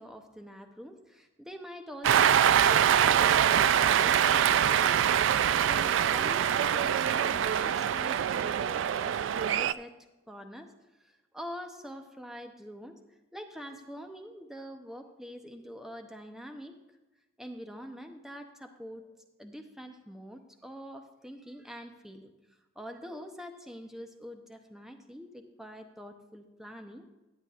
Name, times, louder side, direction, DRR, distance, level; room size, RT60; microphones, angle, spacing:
voice 1, 0.0-4.5 4.8-5.0 5.3-9.2 9.5-9.9 10.3-10.7 11.0-16.8 17.4-19.0 19.4-22.3 22.8-27.2, equal, ahead, 5 dB, 0.7 m, -45 dB
Cheering, 2.0-9.7, right 9 dB, 65° right, 0.3 m, -24 dB
16.0 x 9.4 x 2.5 m, 1.1 s
head